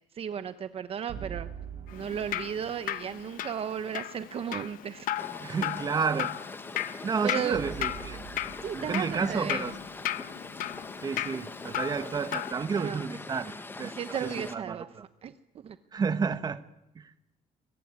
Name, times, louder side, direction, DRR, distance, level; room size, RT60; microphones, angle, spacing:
voice 1, 0.1-1.5 1.9-5.1 7.2-7.6 8.6-9.6 12.8-13.0 13.8-14.9 15.2-15.3 15.6-15.8, right 8 dB, 45° right, 11 dB, 0.9 m, -34 dB
sound 1, 1.1-3.3 7.5-10.8, right 8 dB, 85° right, 6.4 m, -44 dB
Drip, 1.9-12.5, left 13 dB, 85° left, 1.1 m, -36 dB
sound 2, 5.2-14.6, left 3 dB, 15° left, 1.1 m, -42 dB
voice 2, 5.4-6.3 7.0-8.2 8.7-9.8 11.0-13.9 14.2-15.0 15.9-16.6 16.9-17.1, right 5 dB, 30° right, 11 dB, 1.3 m, -31 dB
25.5 x 22.5 x 9.7 m, 0.91 s
cardioid pair, 160°, 14 cm